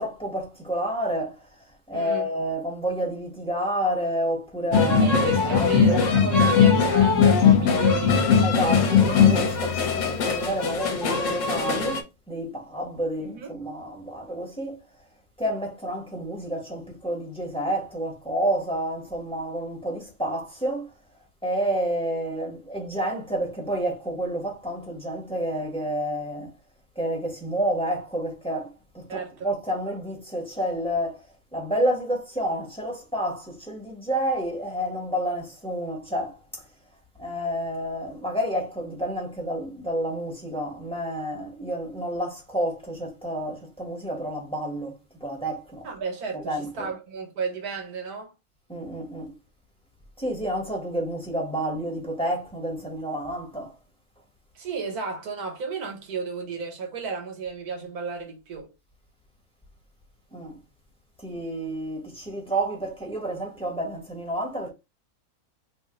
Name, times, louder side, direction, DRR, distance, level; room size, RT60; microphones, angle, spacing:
voice 1, 0.0-6.0 6.9-7.1 8.4-14.8 15.4-20.9 21.4-26.5 26.9-36.7 37.2-45.9 46.3-46.9 48.7-49.4 50.2-53.8 60.3-60.6 61.2-64.7, right 1 dB, 5° left, 1.0 m, -29 dB
voice 2, 1.9-2.3 5.0-8.2 13.2-13.5 29.1-29.5 45.8-48.3 54.5-58.7, right 5 dB, 85° right, 1.6 m, -33 dB
sound 1, 4.7-12.0, left 6 dB, 65° left, 1.0 m, -20 dB
2.9 x 2.5 x 3.7 m
omnidirectional pair, 1.6 m